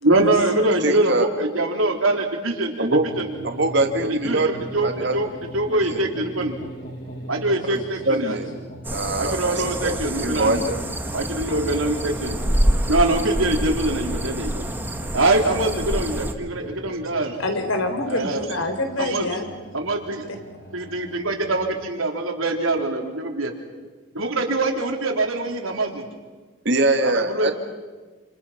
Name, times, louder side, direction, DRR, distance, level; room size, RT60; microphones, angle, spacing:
voice 1, 0.0-2.9 3.2-3.3 4.1-5.3 5.5-6.6 7.3-8.5 9.2-10.6 11.1-12.4 12.9-14.6 15.1-17.4 18.1-18.4 19.0-19.3 19.7-20.3 20.7-23.5 24.1-26.0 27.0-27.5, right 2 dB, 80° right, 2 dB, 3.8 m, -23 dB
voice 2, 0.8-1.3 2.8-3.1 3.4-4.5 4.8-5.1 5.9-6.0 7.6-7.8 8.1-8.5 8.9-10.8 26.7-27.5, right 2 dB, 55° right, 5 dB, 1.9 m, -23 dB
sound 1, 2.9-21.7, equal, 40° left, 7.1 m, -40 dB
sound 2, 8.8-16.3, right 1 dB, 10° right, 1.2 m, -27 dB
voice 3, 17.4-19.4, left 2 dB, 75° left, 7 dB, 3.8 m, -26 dB
30.0 x 28.0 x 5.8 m, 1.4 s
head